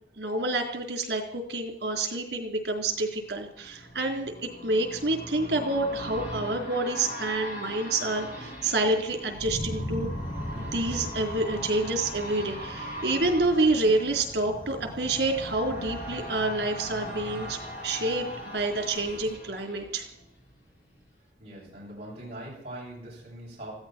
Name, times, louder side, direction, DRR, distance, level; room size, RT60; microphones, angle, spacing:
voice 1, 0.2-4.3 4.6-10.1 10.6-17.6 17.8-20.0, right 2 dB, 70° right, 3 dB, 3.8 m, -28 dB
sound 1, 2.8-20.6 21.0-21.1, equal, 45° left, 5.2 m, -40 dB
Thunder, 8.7-19.3, left 1 dB, 25° left, 1.3 m, -40 dB
voice 2, 21.4-23.7, right 1 dB, 35° right, -6 dB, 7.5 m, -42 dB
20.0 x 15.0 x 4.5 m, 0.71 s
head